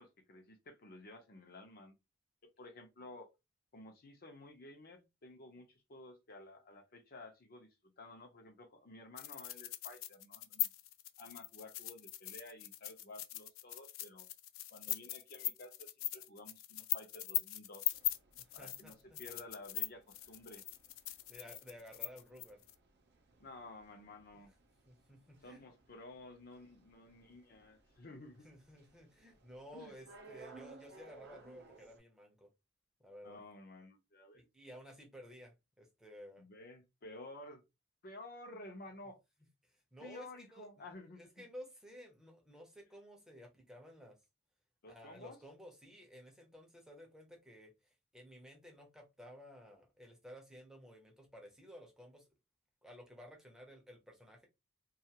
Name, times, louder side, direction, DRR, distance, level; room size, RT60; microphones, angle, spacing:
voice 1, 0.0-1.9 2.4-3.3 3.7-10.7 11.2-14.3 14.7-18.0 18.5-20.6 23.4-24.5 25.4-28.5 29.7-29.9 33.2-34.5 36.4-37.6 38.0-39.2 40.0-41.4 44.8-45.4, left 2 dB, 50° left, 0.7 m, -53 dB
sound 1, 9.2-22.7, left 14 dB, 80° left, 0.3 m, -40 dB
sound 2, 17.9-32.0, right 3 dB, 55° right, 0.6 m, -61 dB
voice 2, 18.4-19.4 21.3-22.6 24.3-24.4 24.9-25.7 28.4-32.5 33.0-33.4 34.3-36.5 39.6-40.7 41.2-44.2 44.9-52.3 52.8-54.5, equal, 5° right, 0.7 m, -54 dB
2.4 x 2.4 x 2.8 m
head